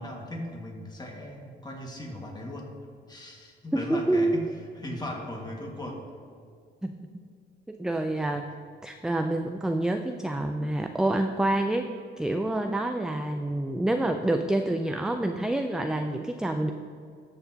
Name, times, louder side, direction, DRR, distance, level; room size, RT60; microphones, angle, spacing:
voice 1, 0.0-2.7 3.1-4.5 4.8-6.0, left 1 dB, 20° left, 0 dB, 1.8 m, -37 dB
voice 2, 3.7-4.4 6.8-6.9 7.7-8.5 8.8-16.7, right 1 dB, 5° right, 6 dB, 0.4 m, -27 dB
13.5 x 6.6 x 2.8 m, 2.2 s
cardioid pair, 90°, 20 cm